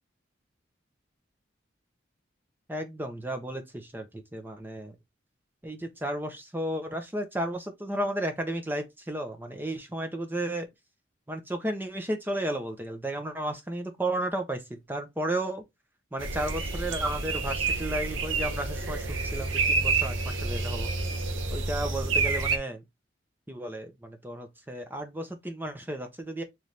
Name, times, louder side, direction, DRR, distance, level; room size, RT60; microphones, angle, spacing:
voice 1, 2.7-5.0 5.6-10.7 11.3-15.6 16.1-20.9 21.5-22.8 23.5-26.4, right 1 dB, 10° right, 0.6 m, -33 dB
sound 1, 16.2-22.6, right 4 dB, 90° right, 0.8 m, -29 dB
4.0 x 3.1 x 3.2 m
head